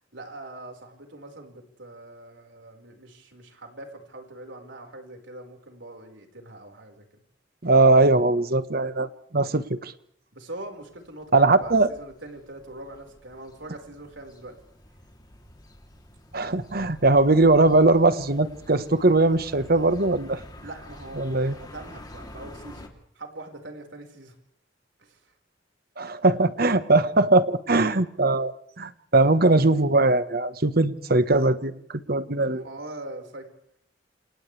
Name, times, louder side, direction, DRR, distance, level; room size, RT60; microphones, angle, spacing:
voice 1, 0.1-7.2 10.3-14.6 20.6-22.9 23.1-24.4 25.0-25.3 32.5-33.5, right 2 dB, 80° right, 3 dB, 5.1 m, -42 dB
voice 2, 7.6-9.9 11.3-11.9 16.3-20.4 21.2-21.5 26.0-32.6, right 2 dB, 55° right, 12 dB, 1.4 m, -20 dB
sound 1, 10.9-22.9, left 1 dB, 20° left, 3.2 m, -48 dB
29.0 x 28.0 x 3.4 m, 0.69 s
head